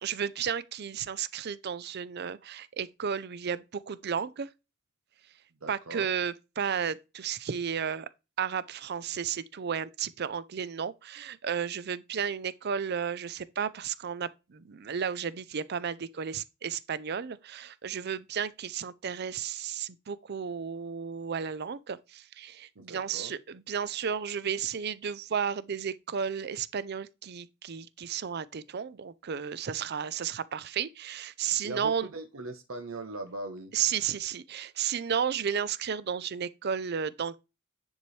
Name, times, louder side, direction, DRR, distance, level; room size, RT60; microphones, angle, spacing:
voice 1, 0.0-4.5 5.7-8.1 8.4-32.1 33.7-37.4, right 7 dB, 50° right, 0.5 m, -33 dB
voice 2, 5.6-6.1 22.8-23.3 31.6-33.7, right 2 dB, 80° right, 0.9 m, -40 dB
9.7 x 4.6 x 3.2 m
head